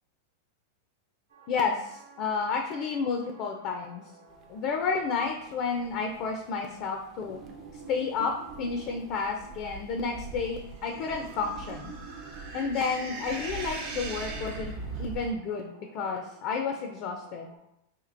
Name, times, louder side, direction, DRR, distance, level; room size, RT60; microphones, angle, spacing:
sound 1, 1.3-17.6, right 5 dB, 80° right, 0.9 m, -49 dB
voice 1, 1.5-4.0 4.5-7.4 7.9-11.9 12.5-17.5, left 5 dB, 45° left, 3 dB, 0.4 m, -31 dB
sound 2, 4.3-15.3, right 3 dB, 35° right, 0.5 m, -45 dB
sound 3, 10.7-15.0, right 3 dB, 55° right, 0.9 m, -41 dB
4.3 x 2.8 x 2.5 m, 0.81 s
hypercardioid pair, 130°, 0 cm